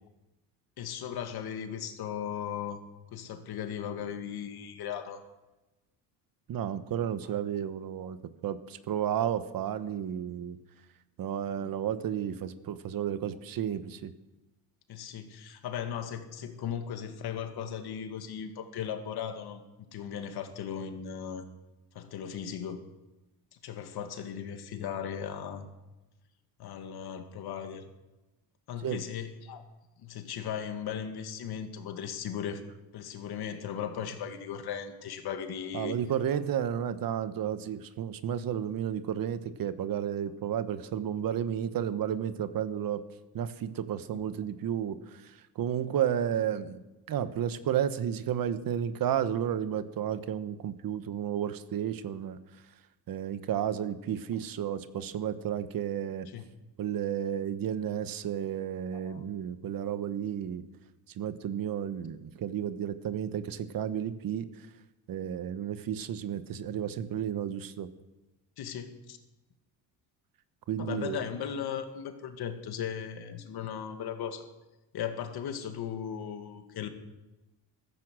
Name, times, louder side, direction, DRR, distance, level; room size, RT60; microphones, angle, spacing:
voice 1, 0.8-2.8 3.1-5.2 8.0-8.1 11.5-11.7 14.9-19.6 19.9-21.4 21.9-22.8 23.6-25.7 26.6-27.9 28.7-29.6 30.0-32.6 32.9-35.9 56.3-56.4 58.9-59.3 68.6-69.2 70.8-74.4 74.9-76.9, left 8 dB, 65° left, 7 dB, 2.1 m, -37 dB
voice 2, 6.5-8.2 8.4-10.6 11.2-14.1 28.8-29.0 35.7-43.0 43.3-46.8 47.1-52.4 53.1-56.3 56.8-60.6 61.2-64.5 65.1-67.9 70.7-71.2, right 9 dB, 55° right, 12 dB, 1.2 m, -32 dB
15.0 x 14.0 x 6.3 m, 1.1 s
cardioid pair, 105°, 40 cm